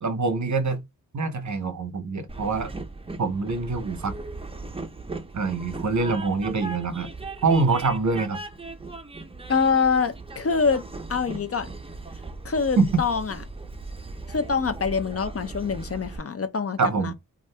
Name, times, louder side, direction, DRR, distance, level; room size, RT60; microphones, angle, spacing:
voice 1, 0.0-0.8 1.1-2.7 3.2-4.1 5.3-7.1 7.4-8.4 12.8-12.9 16.8-17.1, right 4 dB, 55° right, 0.7 m, -24 dB
Train, 2.3-16.2, right 3 dB, 15° right, 0.6 m, -38 dB
voice 2, 9.5-10.8 11.1-11.7 12.4-13.4 14.3-17.1, left 5 dB, 40° left, 0.5 m, -25 dB
2.6 x 2.4 x 3.2 m
wide cardioid pair, 60°, 35 cm